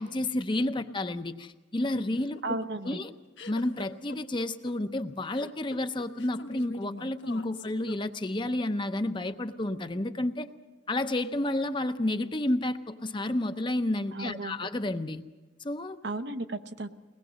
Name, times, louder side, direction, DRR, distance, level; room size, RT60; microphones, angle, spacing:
voice 1, 0.0-2.6 2.9-3.1 3.5-10.5 10.9-15.2 15.6-16.0, left 1 dB, 25° left, 9 dB, 0.7 m, -30 dB
sound 1, 2.1-8.4, left 3 dB, 80° left, 1.3 m, -44 dB
voice 2, 2.4-3.0 14.1-14.6 16.0-16.9, right 2 dB, 65° right, 8 dB, 0.9 m, -34 dB
22.5 x 19.5 x 6.4 m, 1.2 s
head